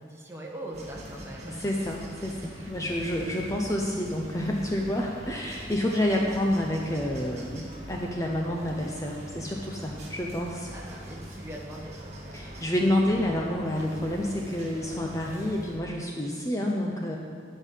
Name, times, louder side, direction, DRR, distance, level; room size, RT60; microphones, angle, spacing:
voice 1, 0.0-1.9 2.5-3.2 10.7-12.0 16.1-16.3, right 1 dB, 15° right, -3 dB, 1.4 m, -42 dB
sound 1, 0.7-15.8, equal, 35° right, 1.8 m, -42 dB
voice 2, 1.6-10.7 12.3-17.2, left 1 dB, 15° left, -1 dB, 0.7 m, -29 dB
12.0 x 5.5 x 7.5 m, 2.2 s
head